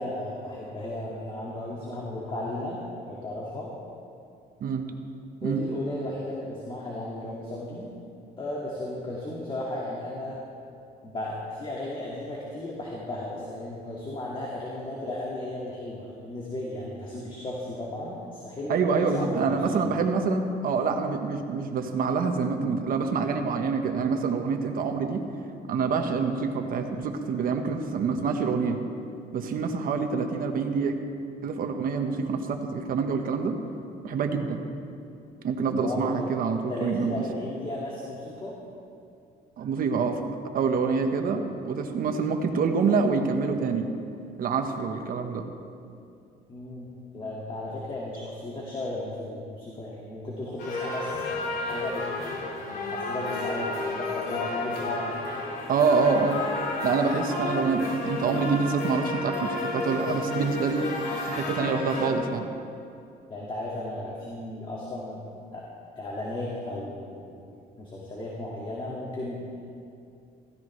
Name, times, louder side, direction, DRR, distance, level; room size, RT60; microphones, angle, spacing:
voice 1, 0.0-2.8 3.1-3.7 5.4-7.9 8.4-10.4 11.0-19.8 35.7-36.3 36.7-38.5 46.5-52.0 52.7-55.2 63.3-65.2 65.5-65.7 66.0-67.4 67.8-69.6, left 1 dB, 30° left, -4 dB, 2.1 m, -35 dB
voice 2, 18.7-25.3 25.7-28.8 29.3-31.0 31.4-33.6 34.0-34.6 35.4-37.2 39.6-40.2 40.5-43.9 44.4-45.4 55.7-56.4 56.8-60.9 61.2-62.5, right 5 dB, 60° right, 5 dB, 1.3 m, -26 dB
sound 1, 50.6-62.1, left 2 dB, 65° left, 2.6 m, -32 dB
16.0 x 15.5 x 3.3 m, 2.5 s
cardioid pair, 110°, 17 cm